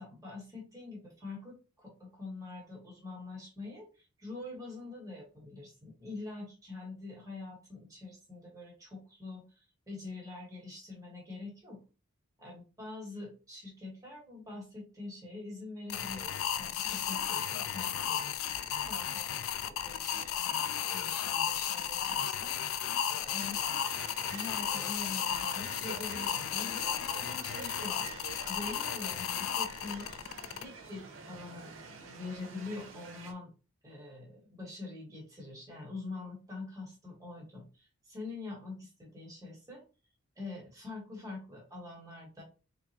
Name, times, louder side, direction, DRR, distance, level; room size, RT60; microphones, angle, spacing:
voice 1, 0.0-11.8 12.4-19.3 19.6-22.9 23.2-23.6 24.3-30.1 30.6-31.7 32.0-33.5 33.8-39.8 40.4-42.4, left 3 dB, 15° right, -3 dB, 1.4 m, -45 dB
sound 1, 15.9-30.6, left 9 dB, 70° left, 0.3 m, -34 dB
sound 2, 23.4-33.3, right 4 dB, 60° right, 0.7 m, -47 dB
4.1 x 3.0 x 2.8 m, 0.33 s
head